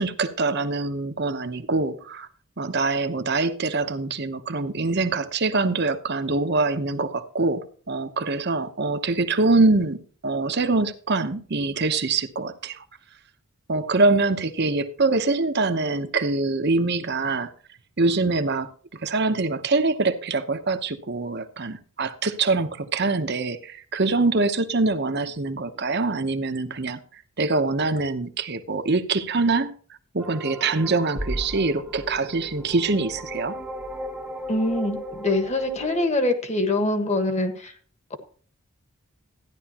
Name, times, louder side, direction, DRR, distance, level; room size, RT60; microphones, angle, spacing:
voice 1, 0.0-2.3 2.6-12.8 13.7-17.5 18.0-29.7 30.1-33.6, right 3 dB, 50° right, 0.9 m, -24 dB
sound 1, 30.2-36.1, right 1 dB, 5° right, 0.9 m, -35 dB
voice 2, 34.5-37.7 38.1-38.2, left 2 dB, 30° left, 1.5 m, -24 dB
13.5 x 10.5 x 2.9 m
head